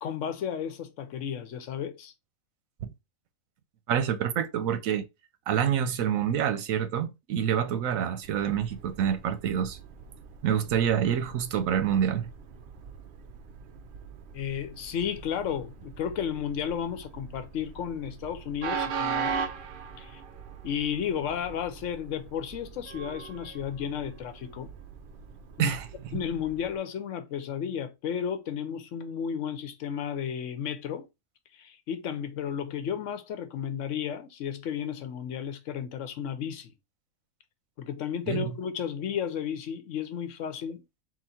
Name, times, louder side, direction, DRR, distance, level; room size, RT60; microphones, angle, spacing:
voice 1, 0.0-2.1 14.3-19.5 20.0-20.2 20.6-24.7 25.6-25.8 26.1-31.0 31.5-36.7 37.8-40.8, left 8 dB, 70° left, 0.9 m, -33 dB
voice 2, 3.9-5.0 5.5-9.8 10.4-12.3 25.6-26.2 38.3-38.5, right 9 dB, 85° right, 1.0 m, -27 dB
Train, 8.2-26.8, right 6 dB, 60° right, 0.5 m, -40 dB
3.9 x 2.5 x 4.1 m
omnidirectional pair, 1.4 m